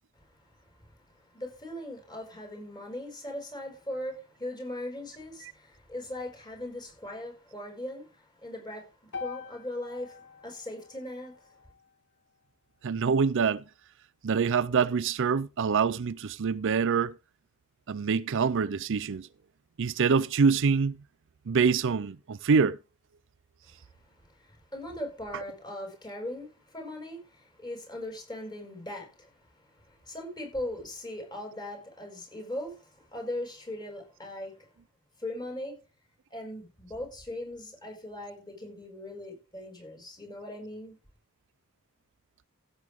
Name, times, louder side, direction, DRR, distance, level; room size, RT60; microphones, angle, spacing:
voice 1, 0.3-11.5 24.2-34.7 35.2-35.8 36.3-40.9, left 1 dB, 20° left, 6.1 m, -40 dB
sound 1, 9.1-13.3, left 5 dB, 55° left, 1.4 m, -46 dB
voice 2, 12.8-13.6 14.2-17.1 17.9-19.3 19.8-21.0 21.5-22.8, right 5 dB, 60° right, 0.5 m, -25 dB
15.5 x 7.7 x 3.6 m
head